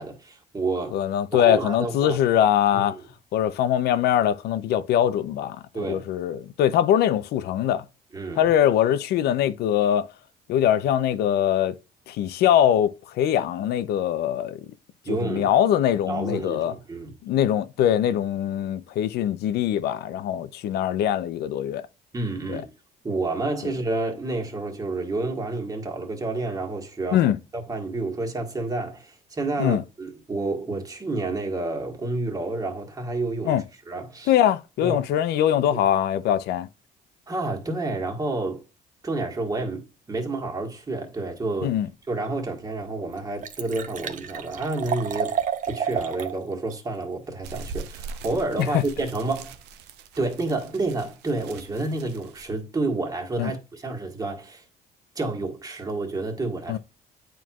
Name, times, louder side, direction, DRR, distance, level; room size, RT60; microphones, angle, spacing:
voice 1, 0.0-1.0 1.3-2.2 2.7-3.0 5.7-6.1 8.1-8.5 15.0-15.5 16.1-17.1 22.1-22.7 23.0-27.2 27.5-33.6 33.9-34.3 34.8-35.0 35.7-35.8 37.3-38.6 39.0-41.8 42.1-45.4 45.7-49.6 50.2-54.6 55.1-56.8, right 2 dB, 20° right, 1.6 m, -29 dB
voice 2, 0.9-3.0 3.3-7.8 8.4-10.1 10.5-11.8 12.1-14.6 15.1-16.7 17.2-21.9 22.5-22.6 27.1-27.4 29.6-29.8 33.4-33.6 34.3-36.7 41.6-41.9 48.6-48.8 53.4-53.5 56.7-56.8, left 10 dB, 75° left, 0.6 m, -22 dB
Liquid, 42.3-42.4 42.8-42.9 43.1-46.3 46.7-46.8, right 7 dB, 50° right, 0.8 m, -30 dB
sound 1, 47.4-52.4, right 4 dB, 85° right, 0.7 m, -41 dB
9.3 x 4.5 x 2.4 m
cardioid pair, 110°, 17 cm